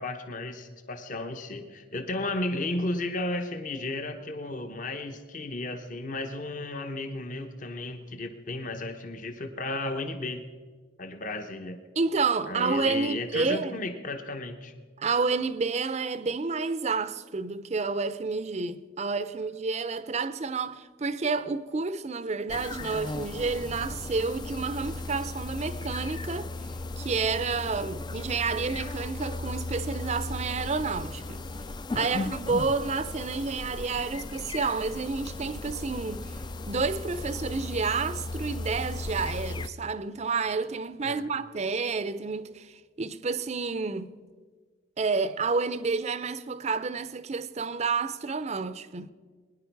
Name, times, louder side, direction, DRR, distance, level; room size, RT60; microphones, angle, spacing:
voice 1, 0.0-10.4 11.0-11.8 12.5-14.7 32.1-32.3 41.0-41.2, left 2 dB, 45° left, 1.0 m, -34 dB
voice 2, 12.0-13.9 15.0-26.5 27.0-31.4 31.9-36.3 36.7-44.1 45.0-49.1, right 4 dB, 35° right, 0.5 m, -30 dB
sound 1, 22.5-39.7, left 2 dB, 25° left, 0.3 m, -36 dB
22.0 x 10.0 x 4.7 m
head